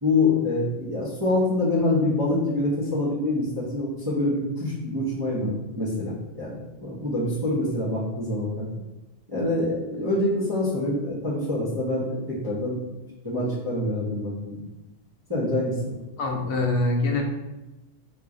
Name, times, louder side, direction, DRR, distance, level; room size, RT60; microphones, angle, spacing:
voice 1, 0.0-8.7 9.3-12.8 13.2-14.6 15.3-15.9, left 2 dB, 20° right, -9 dB, 0.7 m, -26 dB
voice 2, 16.2-17.2, left 2 dB, 85° left, 1 dB, 1.0 m, -24 dB
3.0 x 2.4 x 3.7 m, 1.0 s
omnidirectional pair, 1.4 m